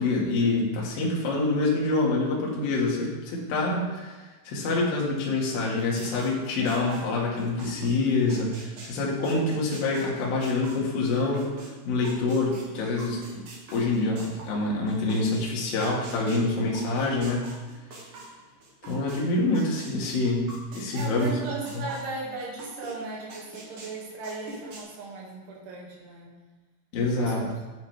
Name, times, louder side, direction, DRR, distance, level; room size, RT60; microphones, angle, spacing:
voice 1, 0.0-11.5 11.9-13.4 13.7-17.5 18.8-21.3 26.9-27.4, left 3 dB, 55° left, -3 dB, 3.0 m, -26 dB
sound 1, 5.8-11.7 12.0-19.2 19.5-22.9 23.3-24.8, right 2 dB, 50° right, 2.8 m, -44 dB
voice 2, 6.6-7.1 20.9-26.3 27.2-27.5, right 3 dB, 70° right, -4 dB, 4.4 m, -37 dB
10.5 x 9.8 x 3.5 m, 1.2 s
omnidirectional pair, 5.8 m